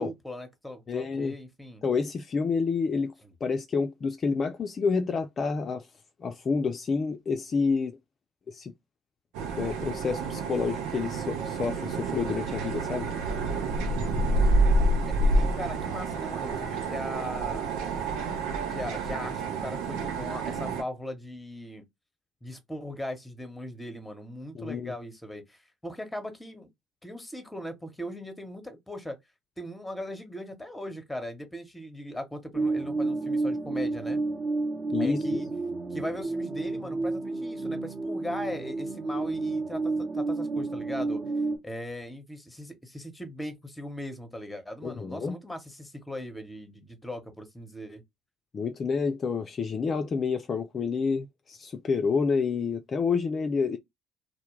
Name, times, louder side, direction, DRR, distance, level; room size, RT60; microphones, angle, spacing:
voice 1, 0.0-1.8 3.2-3.3 15.0-18.1 18.7-21.8 22.4-26.7 27.0-29.2 29.6-34.2 35.0-35.5 35.9-41.2 41.6-48.0, equal, 10° left, 0.9 m, -39 dB
voice 2, 0.9-1.4 1.8-3.1 3.4-5.9 6.2-8.0 8.5-8.7 9.6-13.1 24.5-24.9 34.9-35.4 44.8-45.4 48.5-53.8, left 5 dB, 40° left, 0.3 m, -29 dB
sound 1, 9.3-20.8, right 2 dB, 70° right, 0.6 m, -28 dB
sound 2, 32.5-41.6, right 3 dB, 45° right, 0.9 m, -30 dB
2.1 x 2.0 x 3.0 m
hypercardioid pair, 55°, 0 cm